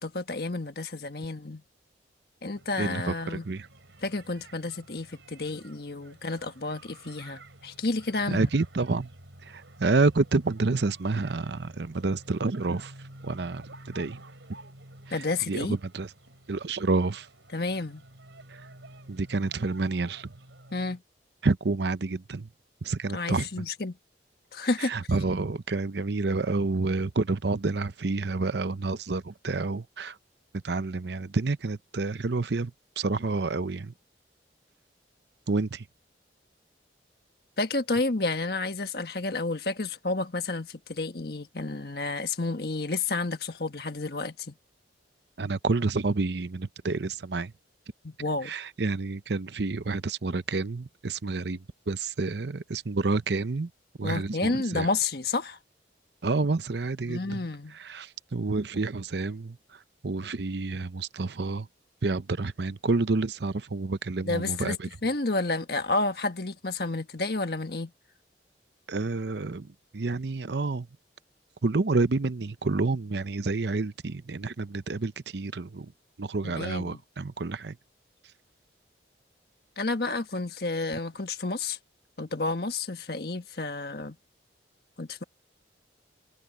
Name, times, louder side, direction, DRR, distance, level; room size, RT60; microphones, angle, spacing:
voice 1, 0.0-1.6 2.4-3.5 4.0-8.5 15.1-15.7 17.5-18.0 20.7-21.0 23.1-24.0 24.5-24.9 37.6-44.5 48.0-48.5 54.0-55.6 57.1-57.8 64.2-67.9 76.4-77.0 79.8-81.8 82.2-84.2 85.0-85.2, left 3 dB, 55° left, 1.5 m, -30 dB
sound 1, 2.5-21.0, right 1 dB, 85° right, 4.4 m, -51 dB
voice 2, 2.8-3.7 8.3-9.1 9.4-12.9 13.2-14.2 15.5-16.1 16.5-17.3 18.5-18.6 19.1-20.3 21.4-22.5 22.8-23.7 24.8-30.2 30.6-33.9 35.5-35.8 45.4-47.5 48.4-53.7 54.0-54.9 56.2-57.5 57.7-61.7 62.0-64.9 68.9-70.9 71.6-75.9 76.2-77.8, right 3 dB, 65° right, 0.7 m, -29 dB
head